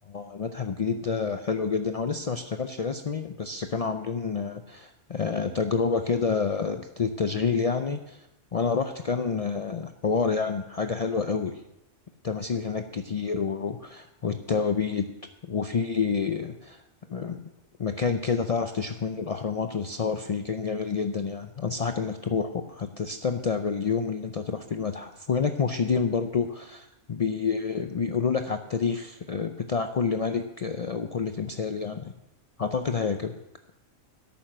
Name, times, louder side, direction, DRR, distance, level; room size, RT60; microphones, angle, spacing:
voice 1, 0.1-8.3 8.5-11.6 12.2-15.1 15.4-16.8 17.1-17.4 17.8-32.1 32.6-33.4, left 5 dB, 65° left, 7 dB, 0.3 m, -28 dB
11.0 x 8.9 x 6.1 m, 0.89 s
omnidirectional pair, 1.4 m